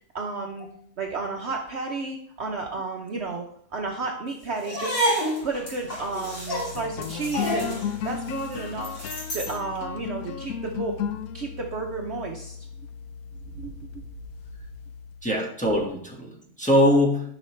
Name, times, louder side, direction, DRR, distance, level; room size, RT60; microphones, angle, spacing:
voice 1, 0.1-0.7 1.0-8.9 9.3-11.0 11.3-12.6 13.5-13.7, right 3 dB, 55° right, 1 dB, 0.9 m, -32 dB
sound 1, 4.6-9.6, equal, 40° left, 2.4 m, -29 dB
sound 2, 5.8-15.4, left 8 dB, 75° left, 1.1 m, -36 dB
voice 2, 15.2-17.2, equal, 5° left, -2 dB, 1.3 m, -22 dB
10.5 x 5.9 x 3.2 m, 0.64 s
omnidirectional pair, 1.6 m